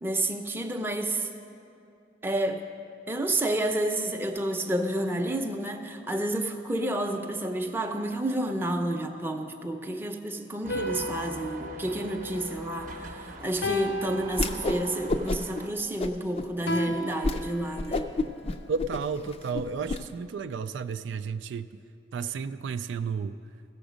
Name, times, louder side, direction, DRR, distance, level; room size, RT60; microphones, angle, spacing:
voice 1, 0.0-1.3 2.2-2.6 3.1-18.1, right 1 dB, 10° right, 4 dB, 0.6 m, -30 dB
sound 1, 10.6-15.7, right 2 dB, 45° right, 0.8 m, -42 dB
sound 2, 10.7-13.0 13.6-15.1 16.7-18.2, equal, 80° left, 0.8 m, -34 dB
Whoosh swoosh swish, 14.3-14.8 15.1-15.6 16.0-16.5 16.9-17.0 17.2-17.4 17.7-20.0, left 2 dB, 35° left, 0.4 m, -29 dB
voice 2, 18.7-21.8 22.1-23.4, right 5 dB, 85° right, 11 dB, 0.3 m, -32 dB
16.0 x 7.0 x 5.1 m, 2.7 s
head